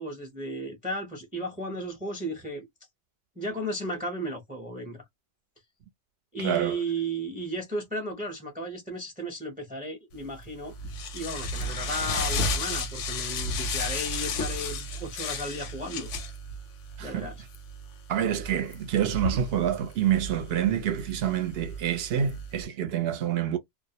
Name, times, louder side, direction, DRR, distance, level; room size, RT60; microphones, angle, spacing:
voice 1, 0.0-2.7 3.4-5.0 6.3-10.7 11.1-16.1 17.0-17.4, right 1 dB, 10° right, 0.5 m, -34 dB
voice 2, 6.4-6.8 17.0-17.3 18.1-23.6, right 9 dB, 65° right, 0.7 m, -27 dB
sound 1, 10.2-22.7, left 2 dB, 85° left, 0.9 m, -34 dB
2.3 x 2.0 x 2.7 m
omnidirectional pair, 1.2 m